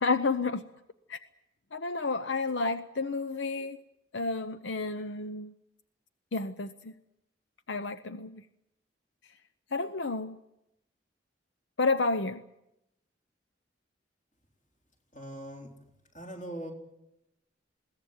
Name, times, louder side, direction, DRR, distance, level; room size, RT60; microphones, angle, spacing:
voice 1, 0.0-0.6 1.1-1.2 1.7-3.8 4.1-5.5 6.3-6.9 7.7-8.4 9.7-10.4 11.8-12.4, left 3 dB, 80° left, 10 dB, 0.8 m, -30 dB
voice 2, 15.1-15.7 16.1-16.7, right 1 dB, 40° left, 1 dB, 4.0 m, -41 dB
21.5 x 17.0 x 9.4 m, 0.89 s
head